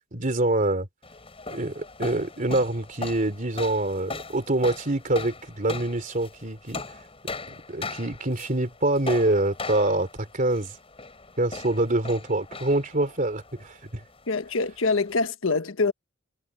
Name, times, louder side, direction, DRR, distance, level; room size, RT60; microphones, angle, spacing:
voice 1, 0.1-0.9 1.5-6.8 7.5-10.8 11.4-14.0, right 2 dB, 40° right, 3.1 m, -25 dB
sound 1, 1.0-15.3, left 3 dB, 30° left, 6.8 m, -39 dB
voice 2, 14.3-15.9, left 3 dB, 90° left, 1.3 m, -25 dB
head